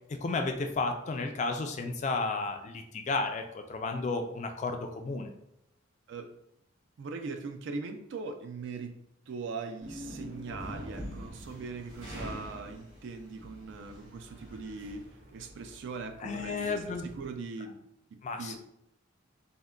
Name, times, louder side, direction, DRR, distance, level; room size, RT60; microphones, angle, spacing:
voice 1, 0.2-3.4 3.7-5.3 16.2-17.1 18.2-18.6, left 3 dB, 35° left, 5 dB, 0.3 m, -32 dB
voice 2, 7.0-15.1 15.3-17.8 18.4-18.6, right 4 dB, 65° right, 6 dB, 0.3 m, -40 dB
sound 1, 9.8-17.4, equal, 85° right, 1.2 m, -45 dB
3.6 x 2.1 x 2.2 m, 0.79 s
head